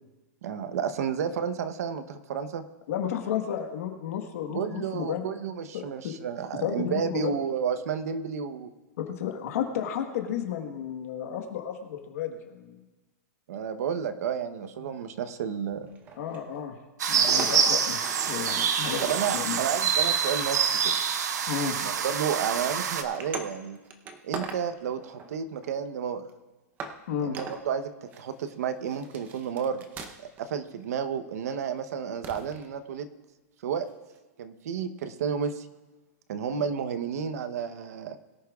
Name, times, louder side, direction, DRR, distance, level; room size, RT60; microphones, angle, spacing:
voice 1, 0.4-2.6 4.5-8.7 13.5-15.9 19.0-20.6 20.8-20.9 21.8-23.8 24.2-26.2 27.2-29.8 30.4-33.1 33.6-33.9 34.4-35.7 36.3-38.2, right 7 dB, 65° right, 11 dB, 0.9 m, -31 dB
voice 2, 2.9-5.3 5.7-6.2 6.6-7.3 9.0-12.8 16.2-16.8 17.1-19.6 21.5-21.8 27.1-27.4, left 9 dB, 60° left, 3 dB, 1.4 m, -32 dB
sound 1, 15.7-16.6 17.0-19.5 20.4-21.1 21.6-21.9 22.3-22.5 23.0-24.6 25.0-25.8 26.3-26.4 26.8-27.0 27.3-27.6 28.1-28.5 28.9-30.4 30.7-30.8 32.2-32.7 34.1-34.2, right 4 dB, 20° right, 0.7 m, -40 dB
sound 2, 17.0-23.0, right 7 dB, 85° right, 1.1 m, -26 dB
22.0 x 10.5 x 2.4 m, 1.1 s
supercardioid pair, 165°, 9 cm